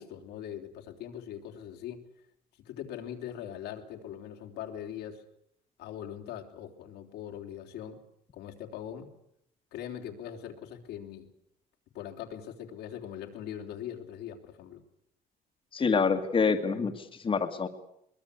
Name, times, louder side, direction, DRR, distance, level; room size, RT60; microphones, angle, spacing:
voice 1, 0.0-2.0 2.7-5.2 5.8-8.0 8.3-9.1 9.7-11.3 11.9-14.8, left 10 dB, 85° left, 2 dB, 3.5 m, -41 dB
voice 2, 15.7-17.7, left 5 dB, 30° left, 4 dB, 2.1 m, -27 dB
23.0 x 21.0 x 8.4 m, 0.75 s
cardioid pair, 110°, 17 cm